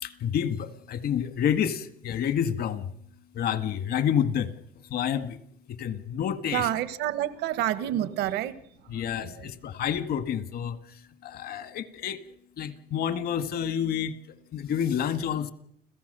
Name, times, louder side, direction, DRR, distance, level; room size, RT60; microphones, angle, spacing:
voice 1, 0.0-2.9 3.3-4.5 4.9-5.4 5.7-6.7 8.9-12.2 12.6-14.2 14.5-15.5, left 9 dB, 65° left, 11 dB, 1.8 m, -29 dB
voice 2, 6.5-8.6 9.2-9.5, right 13 dB, 85° right, 14 dB, 1.3 m, -28 dB
30.0 x 16.5 x 6.8 m, 0.70 s
cardioid pair, 110°, 17 cm